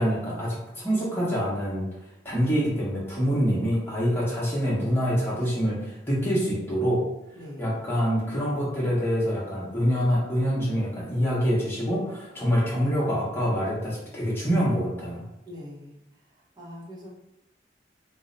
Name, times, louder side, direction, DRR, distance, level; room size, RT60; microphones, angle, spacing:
voice 1, 0.0-1.9 2.2-7.0 7.6-15.2, equal, 15° left, -7 dB, 1.0 m, -25 dB
voice 2, 7.3-7.8 15.4-16.0 16.6-17.1, left 1 dB, 20° right, -6 dB, 0.9 m, -42 dB
2.7 x 2.1 x 3.9 m, 0.84 s
head